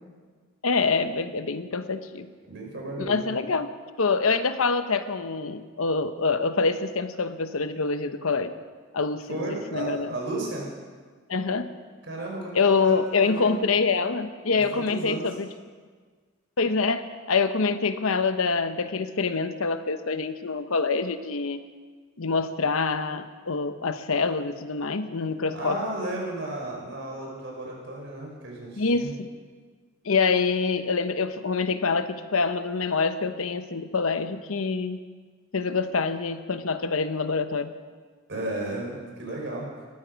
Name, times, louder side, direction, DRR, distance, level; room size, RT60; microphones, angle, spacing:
voice 1, 0.6-2.3 3.0-3.7 4.0-8.5 8.9-9.4 9.7-10.1 11.3-11.7 12.5-15.5 16.6-21.6 22.2-25.8 28.8-29.3 30.0-35.0 35.5-37.7, left 4 dB, 80° left, 10 dB, 0.9 m, -25 dB
voice 2, 2.4-3.3 9.3-10.7 12.0-13.6 14.5-15.4 25.5-29.1 38.3-39.7, right 1 dB, 55° right, -1 dB, 4.8 m, -34 dB
19.0 x 14.0 x 5.2 m, 1.5 s
head